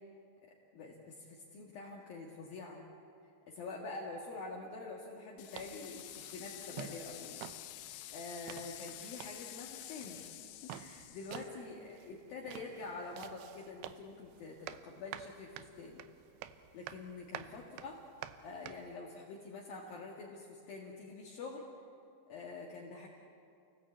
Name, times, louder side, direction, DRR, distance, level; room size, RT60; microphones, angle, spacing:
voice 1, 0.4-2.8 3.5-7.9 8.1-16.0 16.7-18.0 18.4-21.7 22.3-23.1, left 3 dB, 60° left, -3 dB, 3.5 m, -46 dB
sound 1, 5.4-11.5, left 15 dB, 80° left, 2.7 m, -49 dB
sound 2, 5.5-19.0, right 11 dB, 75° right, 2.5 m, -51 dB
29.0 x 18.5 x 8.7 m, 2.5 s
omnidirectional pair, 5.2 m